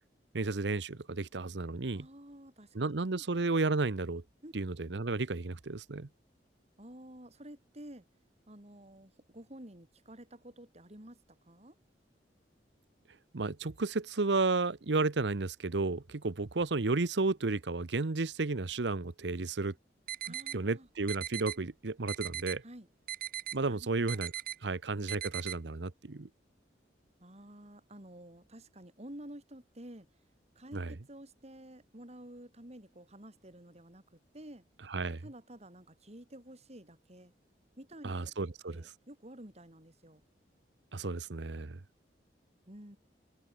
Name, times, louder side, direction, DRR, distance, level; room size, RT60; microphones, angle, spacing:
voice 1, 0.3-2.1 2.7-4.2 4.5-6.1 13.3-19.7 20.5-22.6 23.5-24.3 24.6-26.3 30.7-30.9 34.9-35.2 38.0-38.8 40.9-41.8, right 3 dB, 80° right, 0.9 m, -32 dB
voice 2, 1.9-3.3 4.4-4.5 6.8-8.0 8.5-11.8 20.2-20.9 21.6-21.7 22.6-22.9 23.7-23.9 24.1-24.3 27.2-30.1 30.5-34.6 35.2-37.3 37.8-38.2 38.7-40.2 42.7-43.0, right 1 dB, 40° right, 4.7 m, -51 dB
sound 1, 20.1-20.6 21.1-21.6 22.1-22.6 23.1-23.6 24.1-24.6 25.1-25.6, right 12 dB, 55° right, 0.7 m, -38 dB
head